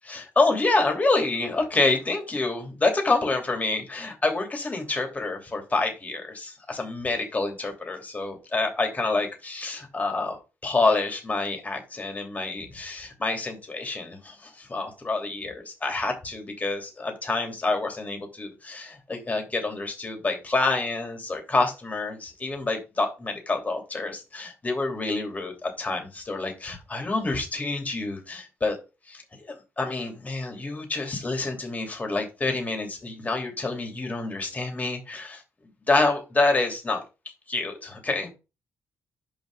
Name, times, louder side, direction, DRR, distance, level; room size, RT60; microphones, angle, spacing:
voice 1, 0.0-28.8 29.1-29.2 29.5-35.4 35.9-37.0 37.5-38.3, left 3 dB, 25° left, 3 dB, 2.9 m, -27 dB
5.7 x 5.2 x 5.5 m, 0.29 s
cardioid pair, 95°, 6 cm